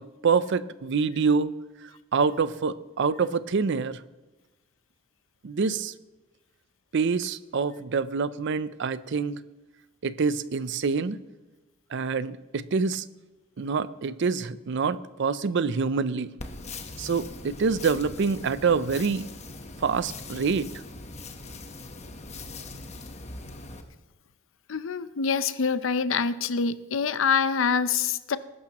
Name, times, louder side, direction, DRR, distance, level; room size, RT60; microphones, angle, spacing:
voice 1, 0.0-1.5 2.1-4.0 5.4-5.9 6.9-9.4 10.0-11.2 11.9-13.0 13.6-16.4 17.0-19.3 19.8-20.7, right 5 dB, 65° right, 15 dB, 0.5 m, -26 dB
sound 1, 16.4-23.8, left 2 dB, 35° left, 1.1 m, -41 dB
voice 2, 24.7-28.4, left 5 dB, 75° left, 13 dB, 0.6 m, -25 dB
20.5 x 11.5 x 3.0 m, 1.1 s
head